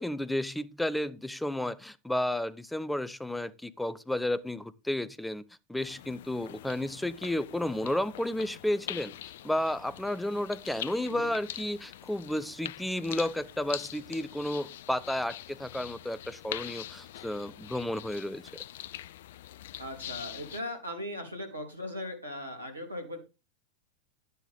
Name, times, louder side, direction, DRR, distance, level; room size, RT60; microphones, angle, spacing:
voice 1, 0.0-5.4 5.7-9.1 9.4-18.4, left 1 dB, 5° left, 0.7 m, -32 dB
sound 1, 5.8-20.6, left 13 dB, 60° left, 0.5 m, -44 dB
voice 2, 19.8-23.2, left 1 dB, 90° right, 3.3 m, -38 dB
11.0 x 10.0 x 3.6 m
figure-of-eight pair, 90°, 0 cm